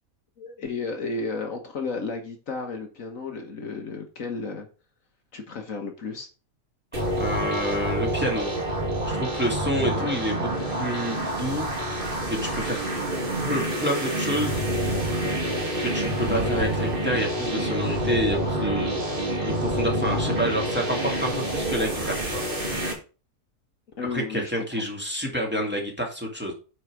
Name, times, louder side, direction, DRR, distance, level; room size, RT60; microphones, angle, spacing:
voice 1, 0.4-4.7 5.3-6.3 9.8-10.2 16.2-16.6 24.0-24.7, left 3 dB, 60° left, 4 dB, 1.6 m, -33 dB
sound 1, 6.9-22.9, right 1 dB, 35° right, 2.7 m, -27 dB
voice 2, 7.2-8.5 9.1-12.8 13.4-14.6 15.8-22.4 24.1-26.5, equal, 5° right, 0 dB, 2.5 m, -29 dB
9.3 x 4.8 x 5.0 m, 0.34 s
omnidirectional pair, 1.6 m